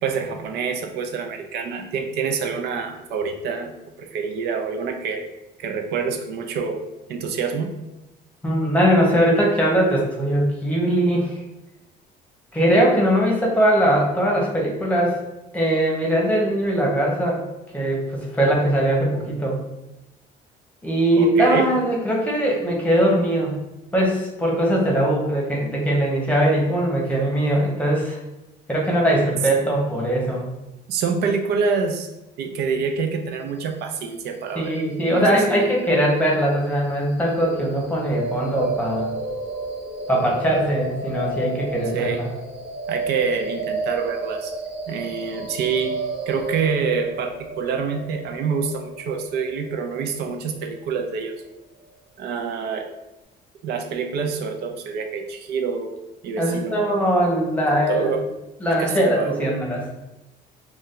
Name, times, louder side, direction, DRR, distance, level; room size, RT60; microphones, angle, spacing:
voice 1, 0.0-3.7 4.0-5.2 5.6-6.8 7.1-7.8 21.1-21.7 30.9-32.1 32.4-34.8 35.1-35.7 41.9-42.2 42.9-44.5 44.9-45.9 46.3-51.4 52.2-52.9 53.6-56.0 56.2-57.1 57.7-58.2 58.8-59.5, right 5 dB, 75° right, 5 dB, 0.5 m, -26 dB
voice 2, 8.4-11.4 12.5-15.2 15.5-17.4 17.7-19.6 20.8-23.6 23.9-28.2 28.7-30.4 34.5-39.1 40.1-42.3 56.4-58.2 58.6-59.8, right 1 dB, 10° left, -2 dB, 0.9 m, -21 dB
sound 1, 37.3-51.3, right 2 dB, 40° right, 1.2 m, -32 dB
2.6 x 2.3 x 3.6 m, 0.96 s
cardioid pair, 110°, 17 cm